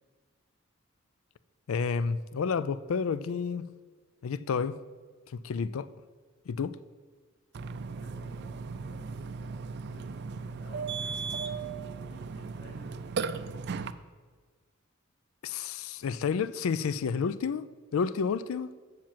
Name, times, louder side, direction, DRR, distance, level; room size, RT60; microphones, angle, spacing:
voice 1, 1.7-3.7 4.2-4.8 5.3-5.9 6.5-6.8 15.4-17.7 17.9-18.7, left 5 dB, 80° left, 0.4 m, -30 dB
Burping eructation, 7.5-13.9, right 5 dB, 55° right, 0.4 m, -36 dB
voice 2, 8.0-11.1 12.0-13.4, left 1 dB, 60° left, 2.1 m, -55 dB
7.5 x 5.8 x 7.4 m
head